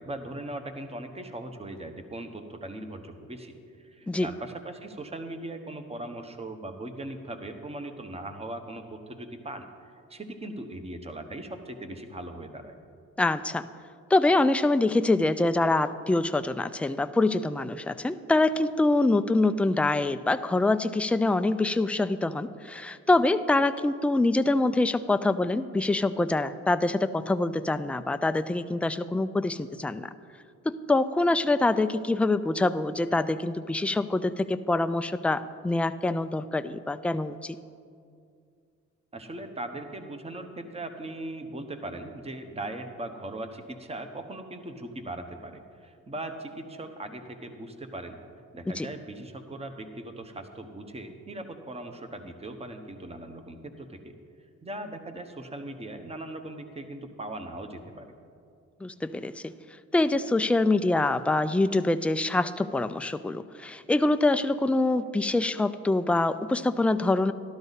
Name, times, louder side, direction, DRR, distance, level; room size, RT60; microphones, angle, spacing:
voice 1, 0.0-12.7 39.1-48.2 48.5-54.1 54.6-58.1, right 1 dB, 20° right, 7 dB, 1.0 m, -39 dB
voice 2, 13.2-13.7 14.1-30.1 30.7-37.6 48.8-48.9 58.8-59.5 59.9-67.3, left 2 dB, 5° left, 11 dB, 0.3 m, -25 dB
12.5 x 12.0 x 4.1 m, 2.3 s
cardioid pair, 90°, 30 cm